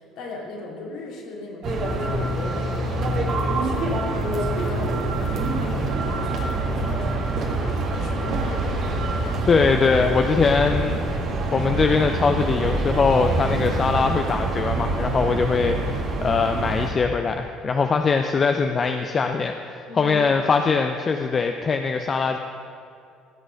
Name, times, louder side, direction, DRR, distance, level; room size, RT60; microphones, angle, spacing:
voice 1, 0.0-8.8 19.9-20.3, left 2 dB, 60° left, -2 dB, 2.5 m, -37 dB
sound 1, 1.6-16.9, right 2 dB, 50° right, 1.7 m, -25 dB
voice 2, 9.5-11.0 11.5-22.4, left 5 dB, 35° left, 5 dB, 0.6 m, -22 dB
16.0 x 6.2 x 6.3 m, 2.6 s
figure-of-eight pair, 55°, 0 cm